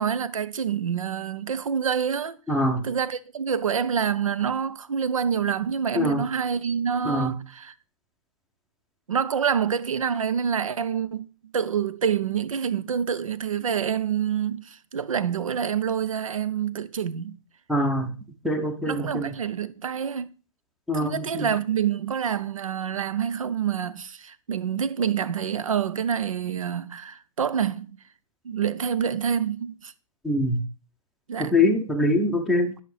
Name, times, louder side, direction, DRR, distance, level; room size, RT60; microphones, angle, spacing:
voice 1, 0.0-2.4 2.8-7.7 9.1-11.3 11.5-17.4 18.9-20.3 20.9-28.0 28.4-29.9 31.3-31.5, right 7 dB, 70° right, 0.6 m, -27 dB
voice 2, 2.5-2.9 5.9-6.2 7.0-7.3 17.7-18.1 18.4-19.3 20.9-21.5 30.2-30.6 31.4-32.7, left 1 dB, ahead, 0.7 m, -24 dB
10.5 x 5.7 x 3.2 m
figure-of-eight pair, 120°, 18 cm